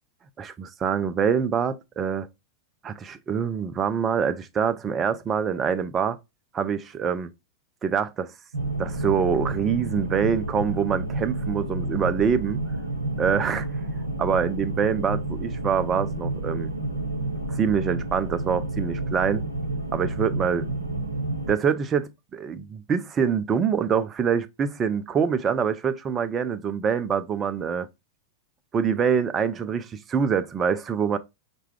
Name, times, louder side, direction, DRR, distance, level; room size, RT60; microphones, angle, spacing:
voice 1, 0.4-2.3 2.8-6.2 6.5-7.3 7.8-8.3 8.8-12.6 13.2-13.7 14.2-16.7 17.5-19.4 19.9-20.7 21.5-27.9 28.7-31.2, right 7 dB, 25° right, 0.4 m, -25 dB
sound 1, 8.5-21.5, right 2 dB, 80° right, 0.6 m, -30 dB
4.5 x 2.2 x 3.2 m
figure-of-eight pair, 90°, 0 cm